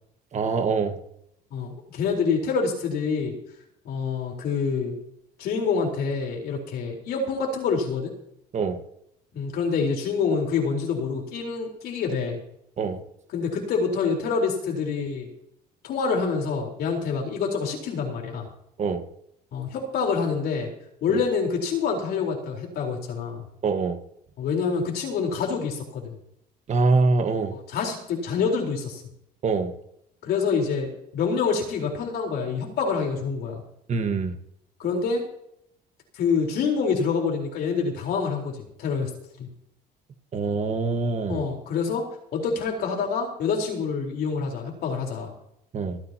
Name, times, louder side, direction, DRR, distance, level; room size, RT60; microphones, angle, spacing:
voice 1, 0.3-0.9 8.5-8.8 12.8-13.0 18.8-19.0 23.6-24.0 26.7-27.5 29.4-29.7 33.9-34.3 40.3-41.5 45.7-46.0, right 4 dB, 45° right, 8 dB, 1.5 m, -24 dB
voice 2, 1.5-3.3 3.8-5.0 5.4-8.1 9.3-12.4 13.3-15.3 15.8-18.5 19.5-20.7 21.0-23.4 24.4-26.2 27.5-29.0 30.2-33.6 34.8-35.2 36.1-39.1 39.4-39.5 41.3-45.3, left 5 dB, 70° left, 1 dB, 4.2 m, -26 dB
26.5 x 9.7 x 2.9 m, 0.74 s
cardioid pair, 110°, 17 cm